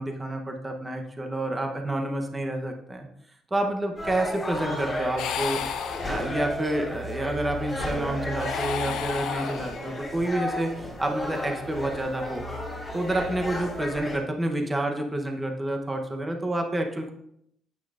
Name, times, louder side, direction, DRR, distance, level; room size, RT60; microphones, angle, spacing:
voice 1, 0.0-3.1 3.5-12.5 12.9-17.1, right 1 dB, 15° right, 3 dB, 0.8 m, -29 dB
sound 1, 4.0-14.2, left 1 dB, 5° left, 3.4 m, -34 dB
sound 2, 4.8-9.8 11.6-14.6, left 1 dB, 90° right, 1.5 m, -43 dB
sound 3, 5.2-6.6 8.3-10.1, left 8 dB, 75° left, 0.7 m, -33 dB
9.6 x 8.6 x 2.5 m, 0.74 s
cardioid pair, 160°, 0 cm